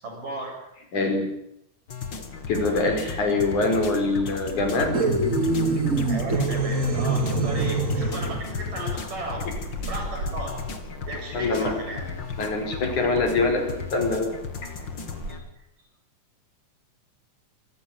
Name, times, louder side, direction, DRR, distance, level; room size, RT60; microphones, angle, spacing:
voice 1, 0.0-0.7 6.1-9.5 9.9-10.7 11.1-12.1 15.2-15.4, right 2 dB, 85° right, 1 dB, 9.5 m, -35 dB
voice 2, 0.9-1.3 2.5-5.0 7.6-7.7 11.3-11.7 12.4-13.7 13.9-14.3, left 3 dB, 70° left, 3 dB, 6.5 m, -24 dB
sound 1, 1.9-15.4, left 5 dB, 40° left, 2.6 m, -35 dB
sound 2, 4.9-8.4, right 3 dB, 25° right, 2.4 m, -24 dB
sound 3, 5.0-15.3, right 1 dB, 55° right, 8.0 m, -42 dB
25.5 x 15.0 x 9.9 m, 0.80 s
omnidirectional pair, 3.6 m